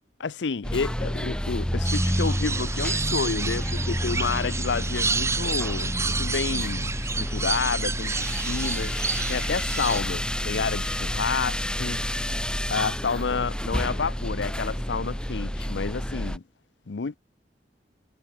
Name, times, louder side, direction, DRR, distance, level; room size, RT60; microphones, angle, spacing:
voice 1, 0.2-9.0 9.3-12.0 12.7-16.4 16.9-17.2, left 5 dB, 90° left, 0.6 m, -30 dB
sound 1, 0.6-16.4, equal, 5° left, 1.6 m, -29 dB
sound 2, 1.8-10.0, right 4 dB, 15° right, 1.0 m, -30 dB
head